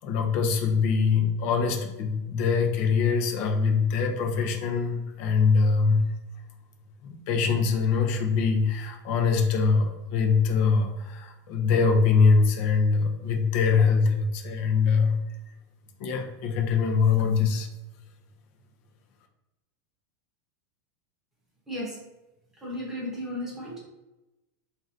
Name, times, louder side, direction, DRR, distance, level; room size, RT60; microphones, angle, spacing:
voice 1, 0.0-6.1 7.0-15.2 16.0-17.7, left 5 dB, 40° left, 3 dB, 0.6 m, -23 dB
voice 2, 21.7-22.0 22.6-23.8, left 1 dB, 5° right, -6 dB, 1.0 m, -34 dB
3.1 x 2.6 x 2.6 m, 0.99 s
supercardioid pair, 170°, 10 cm